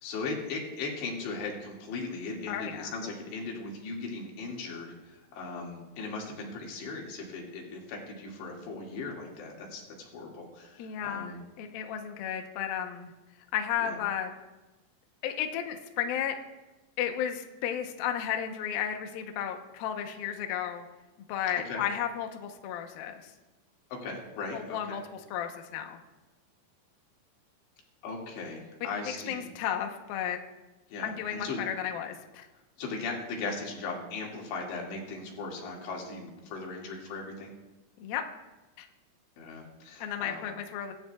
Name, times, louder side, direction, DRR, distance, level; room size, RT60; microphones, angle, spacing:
voice 1, 0.0-11.4 13.8-14.0 21.7-21.8 24.0-25.0 28.0-29.4 30.9-31.6 32.8-37.5 39.4-40.5, left 3 dB, 65° left, -2 dB, 4.3 m, -38 dB
voice 2, 2.5-2.9 10.8-13.1 13.5-14.3 15.2-16.3 17.0-20.8 21.3-23.1 24.5-25.0 25.3-26.0 29.3-30.4 31.0-32.4 38.0-38.2 38.8-38.9 40.0-40.9, left 9 dB, 80° left, 4 dB, 2.1 m, -33 dB
24.0 x 12.0 x 2.4 m, 1.1 s
omnidirectional pair, 5.7 m